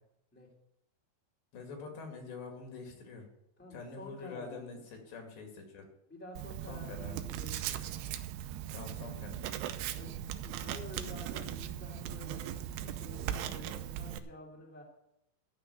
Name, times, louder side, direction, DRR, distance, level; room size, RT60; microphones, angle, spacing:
voice 1, 1.5-3.3 3.7-4.8 5.1-5.9 6.7-7.2 8.7-9.5, left 4 dB, 65° left, 2 dB, 4.1 m, -45 dB
voice 2, 3.6-4.8 6.1-7.9 9.9-10.1 10.4-14.8, left 2 dB, 5° left, -2 dB, 1.4 m, -50 dB
Writing, 6.4-14.2, right 11 dB, 80° right, 2.5 m, -39 dB
13.0 x 5.8 x 8.9 m, 0.81 s
omnidirectional pair, 5.5 m